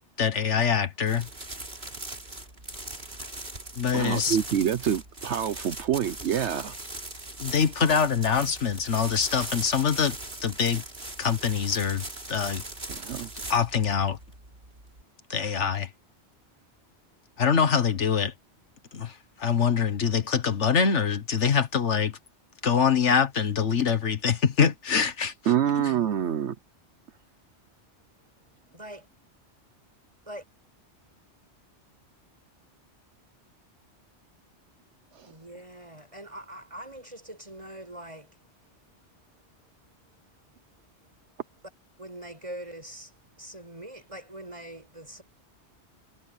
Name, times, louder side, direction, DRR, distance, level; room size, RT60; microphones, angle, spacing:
voice 1, 0.2-1.3 3.8-4.4 7.4-10.2 10.4-10.8 11.2-12.6 13.5-14.2 15.3-15.9 17.4-18.3 18.9-19.1 19.4-22.2 22.6-25.3, left 6 dB, 85° left, 1.7 m, -24 dB
sound 1, 1.0-15.0, right 2 dB, 55° right, 4.1 m, -40 dB
voice 2, 3.9-6.7 12.9-13.3 25.5-26.5 35.1-35.3, right 9 dB, 75° right, 1.1 m, -26 dB
voice 3, 28.7-29.1 30.3-30.4 35.2-38.4 42.0-45.2, right 1 dB, 30° right, 7.8 m, -43 dB
omnidirectional pair, 1.2 m